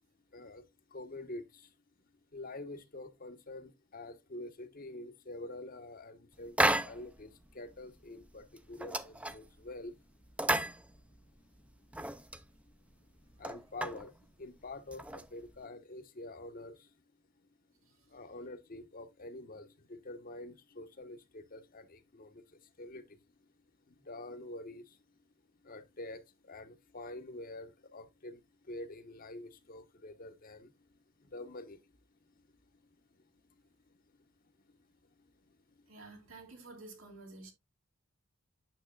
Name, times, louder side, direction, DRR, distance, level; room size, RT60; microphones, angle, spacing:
voice 1, 0.3-1.7 2.3-10.0 13.4-16.9 18.1-23.2 23.9-25.0 25.6-30.7 31.2-31.8, left 2 dB, 45° left, 0.9 m, -47 dB
sound 1, 6.6-7.2 7.5-7.6 8.0-8.3 8.6-9.7 10.2-11.4 11.7-12.4 12.9-13.0 13.3-14.1 14.8-15.6, right 1 dB, 5° right, 0.4 m, -33 dB
voice 2, 35.9-37.5, right 3 dB, 90° right, 2.7 m, -51 dB
8.9 x 6.6 x 2.2 m
head